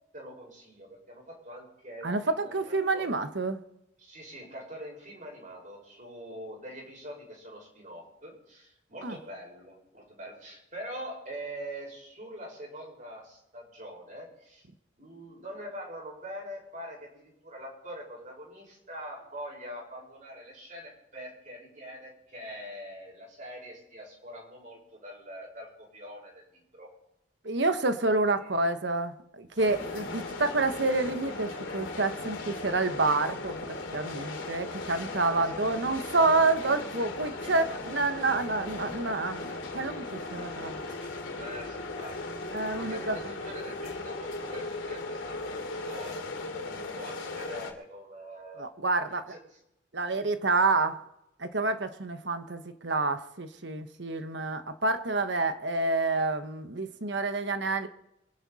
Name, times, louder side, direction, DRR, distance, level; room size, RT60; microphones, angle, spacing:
voice 1, 0.1-3.1 4.0-14.7 15.0-26.9 28.2-28.5 35.3-35.6 41.4-42.4 42.8-46.2 46.6-48.7 49.3-49.6, equal, 40° right, -2 dB, 5.9 m, -44 dB
voice 2, 2.0-3.6 9.0-9.2 27.4-40.8 42.5-43.1 48.6-49.3 49.9-51.0 51.4-57.9, right 3 dB, 60° right, 9 dB, 1.2 m, -28 dB
sound 1, 29.6-47.7, left 3 dB, 75° left, 2.8 m, -37 dB
25.0 x 11.0 x 4.2 m, 0.84 s
head